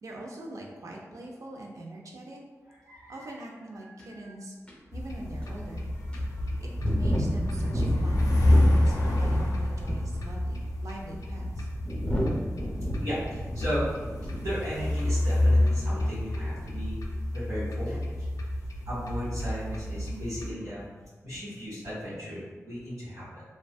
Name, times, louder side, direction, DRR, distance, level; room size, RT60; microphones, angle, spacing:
voice 1, 0.0-2.4 3.1-4.6 4.9-5.9 6.6-11.7, right 1 dB, 70° right, -1 dB, 0.4 m, -43 dB
voice 2, 2.8-3.3 3.8-4.3 10.2-10.3 13.0-13.9 14.4-17.0 17.3-18.5 18.9-20.8 21.2-23.4, equal, 90° right, -12 dB, 1.2 m, -36 dB
sound 1, 4.0-4.1 4.7-4.8 5.4-5.5 6.1-9.5 9.8-10.3 11.0-14.5 14.7-15.1, equal, 20° left, 0.5 m, -31 dB
sound 2, 4.9-20.5, left 1 dB, 90° left, 0.4 m, -28 dB
2.5 x 2.3 x 2.2 m, 1.3 s
wide cardioid pair, 90°, 6 cm